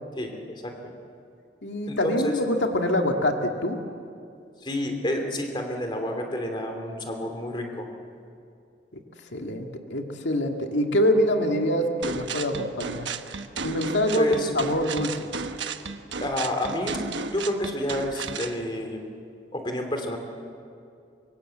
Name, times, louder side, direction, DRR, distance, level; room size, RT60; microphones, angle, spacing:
voice 1, 0.2-0.9 1.9-2.4 4.6-7.9 14.1-14.5 16.2-19.1 19.5-20.2, left 1 dB, 25° left, 4 dB, 2.8 m, -29 dB
voice 2, 1.6-3.8 9.3-13.1 13.6-15.3, left 1 dB, 85° left, 3 dB, 2.0 m, -25 dB
sound 1, 12.0-18.6, right 5 dB, 85° right, 1.2 m, -34 dB
25.0 x 23.5 x 7.9 m, 2.5 s
head